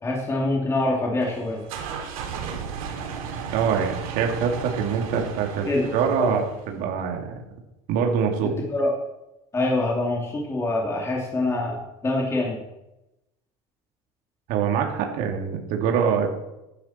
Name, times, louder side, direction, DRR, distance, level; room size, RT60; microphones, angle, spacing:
voice 1, 0.0-1.6 5.1-5.2 5.7-5.9 6.2-6.4 8.7-8.9 9.5-12.6, left 2 dB, 15° left, -2 dB, 2.9 m, -25 dB
sound 1, 1.2-6.8, right 7 dB, 90° right, 3.6 m, -34 dB
voice 2, 3.5-7.3 7.9-8.6 14.5-16.3, right 7 dB, 55° right, 2 dB, 2.8 m, -24 dB
15.0 x 12.0 x 4.5 m, 0.92 s
supercardioid pair, 140°, 17 cm